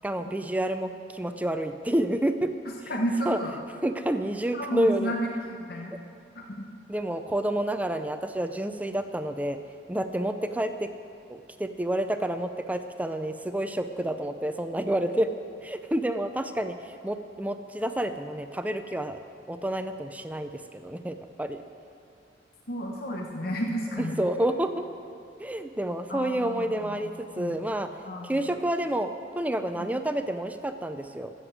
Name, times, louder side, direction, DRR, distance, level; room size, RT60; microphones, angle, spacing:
voice 1, 0.0-2.5 3.3-3.4 3.8-5.1 5.9-6.0 6.9-9.6 9.9-10.9 11.3-15.3 15.6-19.2 19.5-21.6 24.0-24.8 25.4-27.9 28.2-29.1 29.4-31.3, right 1 dB, 10° right, 8 dB, 0.4 m, -29 dB
voice 2, 2.9-3.5 4.5-5.3 5.7-5.9 6.4-6.7 22.7-24.2 26.1-27.0 27.4-27.6 28.0-28.5 29.7-29.9, right 1 dB, 55° left, 1 dB, 1.1 m, -32 dB
14.0 x 7.9 x 7.9 m, 2.6 s
head